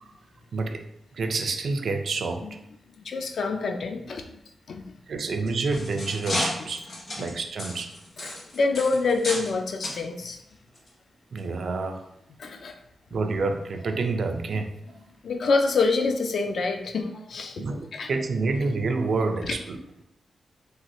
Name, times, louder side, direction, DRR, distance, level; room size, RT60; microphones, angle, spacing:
voice 1, 0.5-0.8 1.1-2.4 5.1-6.8 7.2-7.9 11.3-12.0 13.1-14.7 17.6-19.8, right 3 dB, 60° right, 5 dB, 0.3 m, -28 dB
voice 2, 3.0-4.4 4.7-4.9 8.2-10.4 12.4-12.7 15.2-18.1 19.4-19.5, left 4 dB, 65° left, 5 dB, 0.3 m, -27 dB
sound 1, 5.3-9.5 9.8-10.0 10.7-10.9 11.4-11.5, left 1 dB, 50° left, 0.8 m, -33 dB
3.1 x 2.3 x 2.9 m, 0.79 s
wide cardioid pair, 130°, 0 cm